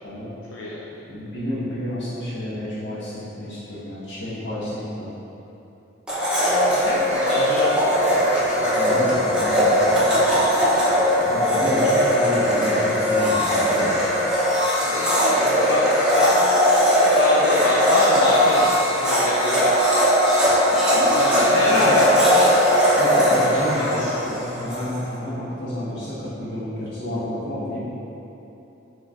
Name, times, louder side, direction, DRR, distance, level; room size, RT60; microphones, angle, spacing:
voice 1, 0.5-0.9 6.6-7.8 14.8-19.7 21.1-22.0 23.9-24.1, left 2 dB, 80° left, -4 dB, 0.4 m, -26 dB
voice 2, 1.1-5.1 8.5-10.4 11.1-14.0 20.9-22.0 23.0-27.8, left 1 dB, 65° left, -10 dB, 1.2 m, -30 dB
Domestic sounds home sounds, 6.1-24.9, equal, 5° right, 0.7 m, -19 dB
3.9 x 3.1 x 3.6 m, 3.0 s
head